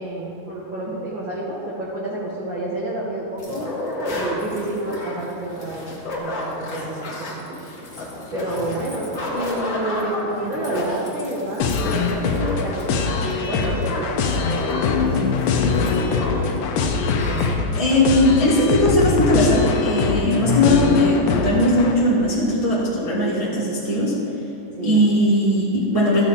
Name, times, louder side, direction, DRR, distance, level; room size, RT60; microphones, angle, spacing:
voice 1, 0.0-3.8 4.1-7.6 7.8-7.9 8.3-14.2 14.5-17.9 24.8-25.1, right 1 dB, 50° right, -7 dB, 1.6 m, -30 dB
sound 1, 3.4-16.6 16.8-16.9 17.1-17.5, left 1 dB, 45° left, 1.2 m, -31 dB
sound 2, 11.6-21.9, left 5 dB, 80° left, 2.5 m, -22 dB
voice 2, 17.8-24.1 24.8-26.2, left 1 dB, 20° right, -7 dB, 0.9 m, -19 dB
14.0 x 8.6 x 4.1 m, 2.9 s
omnidirectional pair, 4.0 m